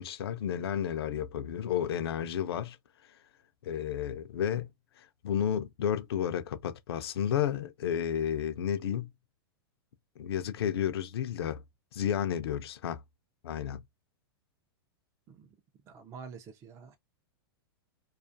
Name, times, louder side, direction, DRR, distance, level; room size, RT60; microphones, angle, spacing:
voice 1, 0.0-2.8 3.0-3.1 3.6-4.7 5.0-9.1 10.2-11.6 11.9-13.0 13.4-13.8, left 9 dB, 80° left, 0.4 m, -32 dB
voice 2, 15.9-17.0, right 6 dB, 25° right, 0.4 m, -47 dB
2.4 x 2.3 x 2.5 m
hypercardioid pair, 130°, 13 cm